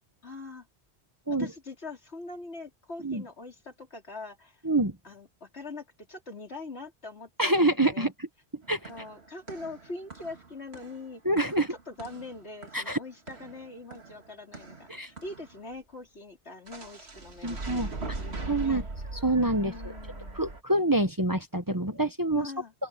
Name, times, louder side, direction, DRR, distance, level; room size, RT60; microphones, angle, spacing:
voice 1, 0.2-0.7 1.4-4.6 5.0-8.1 8.9-11.2 11.6-18.8 19.5-20.6 22.4-22.7, left 3 dB, 85° left, 4.5 m, -43 dB
voice 2, 7.4-8.1 8.7-8.9 11.2-11.7 12.7-13.0 14.9-15.1 17.4-17.9 18.5-18.8 19.2-19.7 20.4-22.5, right 1 dB, 20° right, 1.2 m, -26 dB
sound 1, 8.6-15.6 16.7-20.6, right 3 dB, 75° right, 2.5 m, -41 dB
open air
omnidirectional pair, 1.1 m